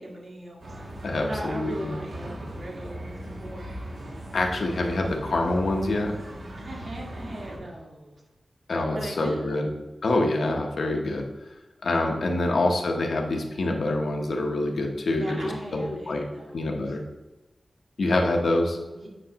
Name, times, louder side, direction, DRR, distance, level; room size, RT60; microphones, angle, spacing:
voice 1, 0.0-3.8 6.6-8.2 8.9-9.6 12.5-12.7 15.1-16.9 18.9-19.1, right 1 dB, 55° right, -3 dB, 1.7 m, -39 dB
sound 1, 0.6-7.6, equal, 85° right, 1.3 m, -39 dB
voice 2, 1.0-2.0 4.3-6.1 8.7-9.7 10.0-11.3 11.8-16.2 16.5-17.0 18.0-18.8, left 2 dB, 85° left, 1 dB, 0.9 m, -26 dB
8.0 x 5.2 x 2.9 m, 1.1 s
wide cardioid pair, 110°, 0 cm